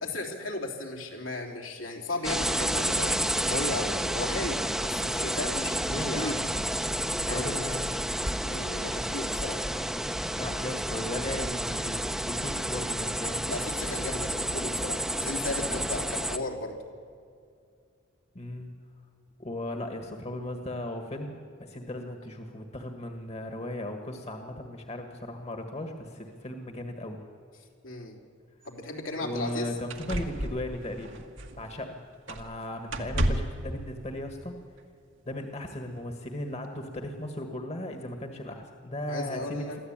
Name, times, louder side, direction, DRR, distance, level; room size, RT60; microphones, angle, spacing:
voice 1, 0.0-6.4 7.3-7.7 8.4-9.7 13.5-16.8 27.8-28.2 28.6-29.7 39.1-39.8, left 2 dB, 80° left, 1 dB, 3.4 m, -35 dB
sound 1, 2.2-16.4, right 1 dB, ahead, 0.8 m, -30 dB
voice 2, 5.9-6.5 7.3-7.9 10.4-13.4 18.4-18.7 19.4-27.2 29.2-31.2 31.6-32.0 32.3-34.6 35.3-39.9, left 1 dB, 35° left, 5 dB, 1.6 m, -36 dB
sound 2, 28.6-28.7 29.4-29.5 29.9-31.8 32.3-32.6 32.9-33.7 34.8-34.9, right 1 dB, 70° right, 1.9 m, -32 dB
23.5 x 14.5 x 8.8 m, 2.3 s
head